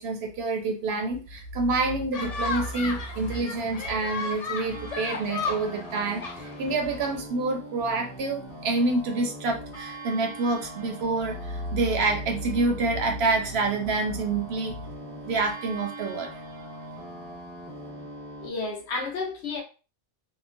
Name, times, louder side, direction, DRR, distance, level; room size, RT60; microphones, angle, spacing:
voice 1, 0.0-14.9 15.2-16.3, right 3 dB, 65° right, 0.7 m, -27 dB
sound 1, 2.1-7.2, left 4 dB, 85° left, 0.3 m, -34 dB
sound 2, 4.7-18.5, right 1 dB, 30° left, 1.1 m, -41 dB
voice 2, 18.4-19.6, left 3 dB, 65° left, 1.0 m, -31 dB
2.9 x 2.1 x 2.5 m
omnidirectional pair, 1.2 m